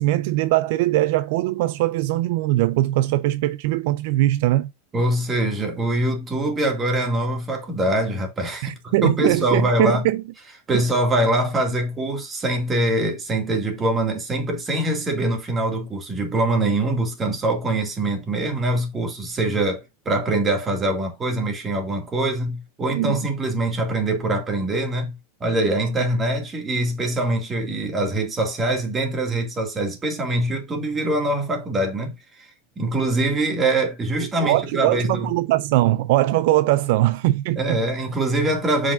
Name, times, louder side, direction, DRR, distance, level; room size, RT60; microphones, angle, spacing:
voice 1, 0.0-4.7 8.6-10.2 10.7-10.8 22.9-23.2 34.2-37.8, right 16 dB, 65° right, 0.4 m, -21 dB
voice 2, 4.9-10.0 10.7-32.5 32.8-35.3 37.6-38.9, right 1 dB, 20° right, 2.2 m, -23 dB
7.3 x 5.0 x 2.6 m
supercardioid pair, 140°, 0 cm